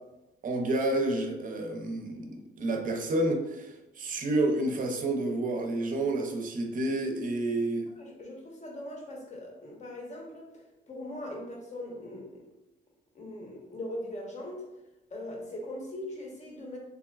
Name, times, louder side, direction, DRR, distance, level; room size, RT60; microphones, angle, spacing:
voice 1, 0.4-7.9, right 2 dB, 45° right, 3 dB, 0.6 m, -29 dB
voice 2, 8.0-12.4 13.1-14.6 15.1-16.8, left 1 dB, 35° left, -1 dB, 0.9 m, -40 dB
3.5 x 2.2 x 2.2 m, 0.96 s
cardioid pair, 90°, 20 cm